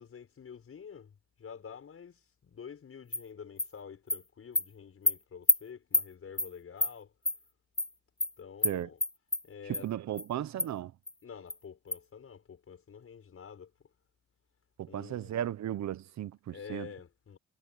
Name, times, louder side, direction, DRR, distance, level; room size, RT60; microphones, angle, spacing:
voice 1, 0.0-7.1 8.4-9.0 9.4-9.9 11.2-13.7 14.9-15.3 16.5-17.4, left 7 dB, 50° left, 7.3 m, -48 dB
Animal, 3.1-3.2 3.6-3.7 4.1-4.2 4.6-4.7 5.1-5.2 5.5-5.6 5.9-6.1 6.4-6.5 6.8-6.9 7.3-7.4 7.8-7.9 8.2-8.3 8.6-8.7 9.0-9.4 9.7-9.8 10.2-10.3 10.6-10.7 11.1-11.2 11.5-11.6 11.9-12.0, left 2 dB, 10° left, 0.9 m, -27 dB
voice 2, 9.7-10.9 14.8-16.9, right 11 dB, 65° right, 1.1 m, -35 dB
cardioid pair, 90°, 30 cm